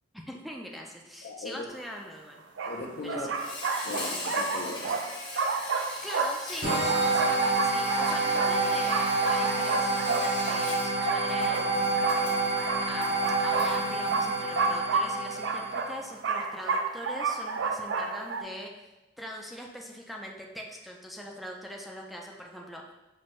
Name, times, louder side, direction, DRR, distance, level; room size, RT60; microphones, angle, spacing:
voice 1, 0.3-2.4 3.0-3.3 6.0-13.2 13.4-18.7 19.2-22.8, equal, ahead, -1 dB, 0.4 m, -41 dB
voice 2, 1.2-1.7 2.7-3.6 3.8-5.0, left 3 dB, 60° left, 3 dB, 0.5 m, -38 dB
distant-dogs-barking-sound-effect, 1.8-1.9 2.6-18.4, right 4 dB, 80° right, 0.4 m, -31 dB
Insect, 3.3-14.7, left 2 dB, 25° left, 0.7 m, -41 dB
sound 1, 6.6-16.0, right 3 dB, 55° right, 1.1 m, -28 dB
5.8 x 2.6 x 3.1 m, 1.0 s
head